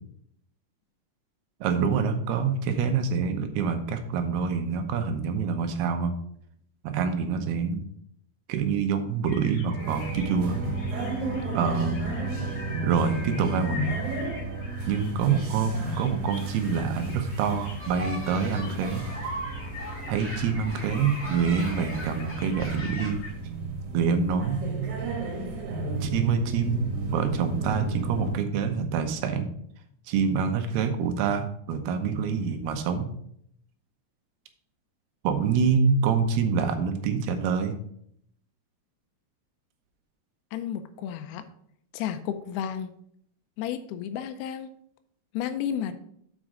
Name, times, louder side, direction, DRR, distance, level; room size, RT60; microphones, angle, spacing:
voice 1, 1.6-6.1 6.8-7.8 8.5-10.6 11.5-12.0 12.8-13.9 14.9-19.0 20.1-23.2 23.9-24.6 26.0-26.8 27.1-29.5 30.1-33.1 35.2-37.8, right 6 dB, 85° right, 7 dB, 2.9 m, -26 dB
sound 1, 9.3-23.3, left 3 dB, 70° left, 3.6 m, -44 dB
sound 2, 9.8-28.4, right 3 dB, 60° right, 2.5 m, -33 dB
sound 3, 17.8-23.1, right 1 dB, 10° right, 0.8 m, -39 dB
voice 2, 40.5-41.5 41.9-42.9 43.6-44.7 45.3-46.0, left 9 dB, 85° left, 8 dB, 2.6 m, -32 dB
7.6 x 5.1 x 4.9 m, 0.68 s
omnidirectional pair, 4.5 m